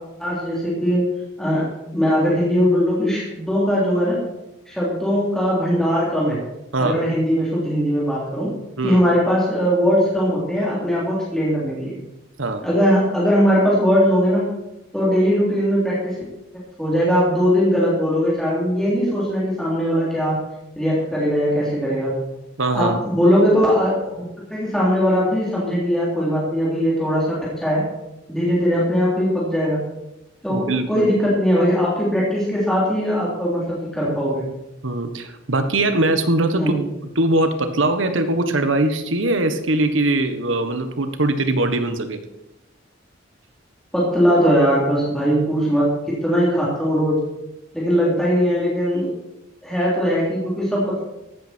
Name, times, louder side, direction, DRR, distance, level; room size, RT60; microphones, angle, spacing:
voice 1, 0.2-1.0 1.4-1.6 1.9-4.2 4.7-6.4 6.8-8.5 8.8-12.0 12.6-14.5 14.9-16.2 16.8-20.4 20.8-22.1 22.7-27.8 28.3-29.8 30.4-34.4 36.6-36.8 43.9-45.9 46.2-47.2 47.7-49.1 49.6-51.0, equal, 5° left, -7 dB, 3.6 m, -20 dB
voice 2, 22.6-23.0 30.5-31.1 34.8-36.7 37.1-42.2, right 2 dB, 85° right, 8 dB, 1.4 m, -21 dB
14.5 x 12.0 x 4.6 m, 0.93 s
head